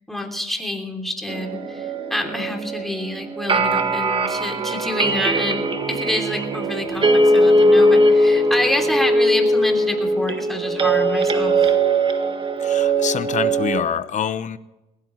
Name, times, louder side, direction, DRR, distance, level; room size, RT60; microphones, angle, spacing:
voice 1, 0.1-5.6 5.9-11.7, left 1 dB, ahead, 2 dB, 3.1 m, -27 dB
sound 1, 1.3-13.8, right 1 dB, 30° right, 1.7 m, -20 dB
voice 2, 12.6-14.6, left 8 dB, 45° left, 13 dB, 1.0 m, -26 dB
20.5 x 16.5 x 3.2 m, 1.0 s
cardioid pair, 110°, 17 cm